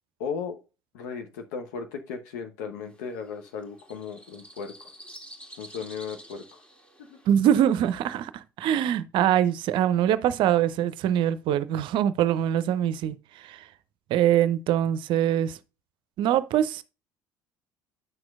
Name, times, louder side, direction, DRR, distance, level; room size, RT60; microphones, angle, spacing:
voice 1, 0.2-0.6 0.9-4.9 5.6-6.6 7.0-7.2, left 6 dB, 70° left, 0.9 m, -36 dB
sound 1, 2.8-8.0, right 1 dB, 15° left, 1.7 m, -49 dB
voice 2, 7.3-13.6 14.1-15.6 16.2-16.8, right 10 dB, 55° right, 0.6 m, -23 dB
9.0 x 6.1 x 2.4 m
figure-of-eight pair, 60°, 10 cm